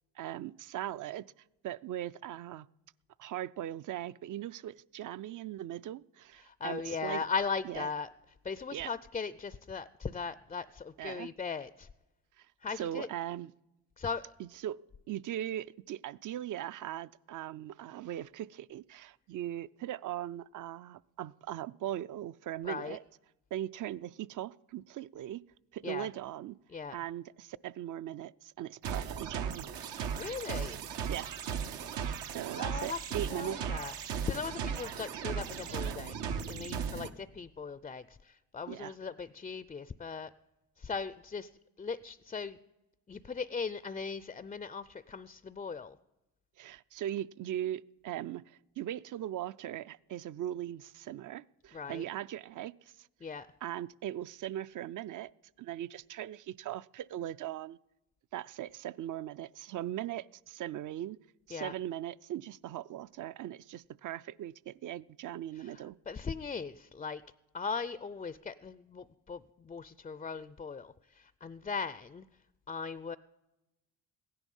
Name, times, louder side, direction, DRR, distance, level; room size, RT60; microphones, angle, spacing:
voice 1, 0.2-1.3 1.6-2.7 3.2-7.3 7.6-7.9 8.7-8.9 11.0-11.3 12.4-13.5 14.4-14.8 15.1-23.0 23.5-25.4 25.7-26.6 26.9-29.7 31.1-31.3 32.2-33.6 38.7-39.0 46.6-53.1 53.6-55.3 55.6-57.8 58.3-61.2 61.5-66.0, right 12 dB, 50° right, 0.5 m, -39 dB
voice 2, 6.5-8.1 8.5-11.9 12.6-13.1 14.0-14.3 22.6-23.0 25.8-26.1 26.7-27.0 30.2-30.8 32.6-33.0 33.3-33.9 34.2-36.2 36.5-38.0 38.5-40.3 40.8-41.5 41.8-42.6 43.1-45.9 51.7-52.0 53.2-53.5 61.5-61.7 66.1-67.2 67.5-69.4 69.7-70.9 71.4-72.2 72.7-73.2, left 5 dB, 20° left, 0.4 m, -38 dB
sound 1, 28.8-37.1, right 7 dB, 75° right, 1.0 m, -37 dB
16.0 x 11.0 x 5.4 m
supercardioid pair, 65°, 41 cm